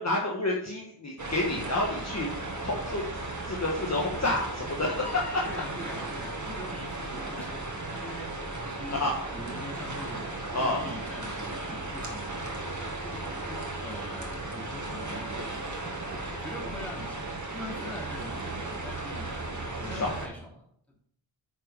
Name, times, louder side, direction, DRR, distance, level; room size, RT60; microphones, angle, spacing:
voice 1, 0.0-2.3 2.6-3.0 3.4-5.5 7.4-7.5 8.6-9.3 10.5-10.9 19.8-20.1, left 2 dB, 35° left, -2 dB, 1.5 m, -29 dB
sound 1, 1.2-20.3, right 2 dB, 40° right, 2.0 m, -36 dB
voice 2, 5.4-8.3 8.6-9.0 9.3-12.4 13.0-19.3 19.7-20.5 20.9-21.0, left 1 dB, 5° left, -4 dB, 3.5 m, -43 dB
9.2 x 6.3 x 5.2 m, 0.68 s
wide cardioid pair, 120°, 46 cm